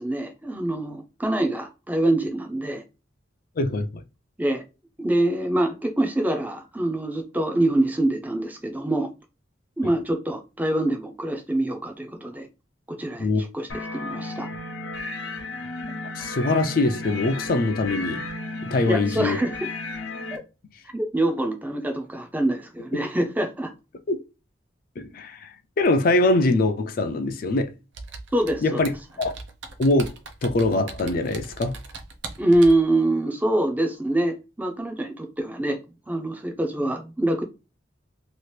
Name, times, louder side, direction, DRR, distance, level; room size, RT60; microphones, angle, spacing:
voice 1, 0.0-2.8 4.4-4.6 5.0-9.1 9.8-12.5 12.9-14.5 18.8-19.7 20.3-20.4 20.9-23.7 28.3-28.8 32.4-37.4, right 1 dB, 10° right, 0.5 m, -25 dB
voice 2, 3.6-3.9 13.2-13.4 16.2-18.2 18.6-19.4 24.1-24.2 25.0-27.7 28.6-28.9 29.2-29.3 29.8-30.1 30.4-31.7, left 2 dB, 50° left, 0.4 m, -23 dB
sound 1, 13.7-20.4, left 2 dB, 80° left, 0.8 m, -33 dB
Computer keyboard, 27.9-32.8, right 4 dB, 70° right, 0.5 m, -40 dB
2.9 x 2.4 x 3.2 m
head